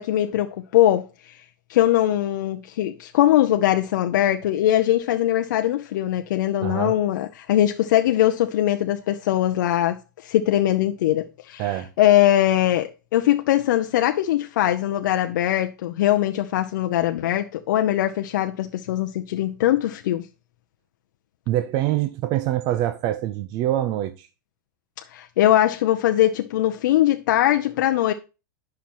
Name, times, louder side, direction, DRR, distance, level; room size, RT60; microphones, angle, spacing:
voice 1, 0.0-1.4 1.7-11.7 12.0-20.2 25.1-28.1, left 13 dB, 75° left, 0.6 m, -21 dB
voice 2, 6.6-7.0 11.6-11.9 21.5-24.3, right 13 dB, 45° right, 0.6 m, -25 dB
10.5 x 5.8 x 3.0 m
hypercardioid pair, 125°, 10 cm